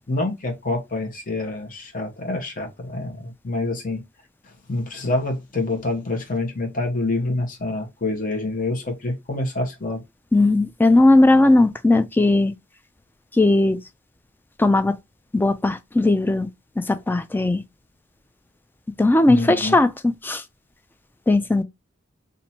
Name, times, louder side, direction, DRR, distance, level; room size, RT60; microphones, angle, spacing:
voice 1, 0.0-4.0 4.7-10.0 19.3-19.8, left 2 dB, 40° left, 1.1 m, -27 dB
voice 2, 10.3-12.5 13.3-13.8 14.6-14.9 15.3-16.5 16.8-17.6 19.0-20.4 21.3-21.6, left 2 dB, 10° left, 0.3 m, -17 dB
2.8 x 2.5 x 4.2 m
head